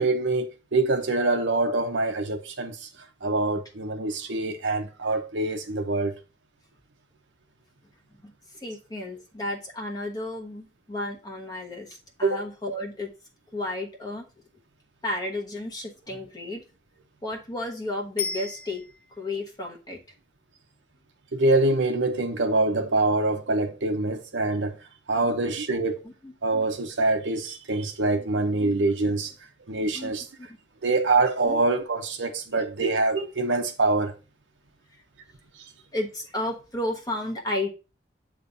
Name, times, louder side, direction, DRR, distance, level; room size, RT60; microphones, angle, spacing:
voice 1, 0.0-2.9 3.2-6.1 12.2-12.5 21.3-24.8 25.1-26.1 26.4-29.3 29.7-30.3 30.8-34.1, right 2 dB, 85° right, 0.9 m, -25 dB
voice 2, 8.6-13.1 13.5-14.3 15.0-16.6 17.2-18.8 19.2-20.0 26.0-26.3 28.1-28.6 29.9-30.1 30.4-30.5 31.5-31.6 34.9-35.0 35.9-37.7, left 1 dB, 20° left, 1.2 m, -33 dB
Bicycle bell, 18.2-19.3 28.4-28.5, left 5 dB, 55° left, 1.1 m, -34 dB
8.4 x 3.2 x 5.4 m
head